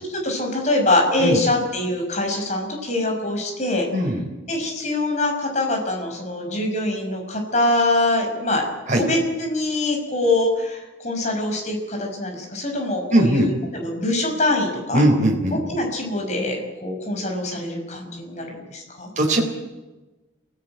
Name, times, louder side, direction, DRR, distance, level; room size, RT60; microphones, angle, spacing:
voice 1, 0.1-3.9 4.5-8.7 9.0-15.0 15.5-19.1, left 2 dB, 35° left, 1 dB, 5.7 m, -24 dB
voice 2, 3.9-4.2 8.9-9.0 13.1-13.5 14.9-15.6 19.2-19.4, right 1 dB, 40° right, -1 dB, 4.0 m, -19 dB
27.5 x 18.0 x 9.0 m, 1.1 s
head